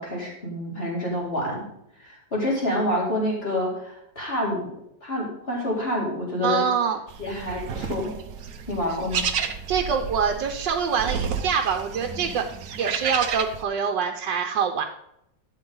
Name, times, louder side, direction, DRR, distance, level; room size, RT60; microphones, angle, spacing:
voice 1, 0.0-1.7 2.0-4.6 5.0-6.6 7.2-8.1 8.7-9.2, left 1 dB, 30° left, -4 dB, 4.1 m, -27 dB
voice 2, 6.4-7.0 9.7-12.5 12.8-14.8, right 6 dB, 80° right, 3 dB, 1.5 m, -25 dB
sound 1, 7.1-13.6, right 7 dB, 55° right, 1.1 m, -31 dB
12.0 x 8.3 x 3.9 m, 0.78 s
omnidirectional pair, 1.9 m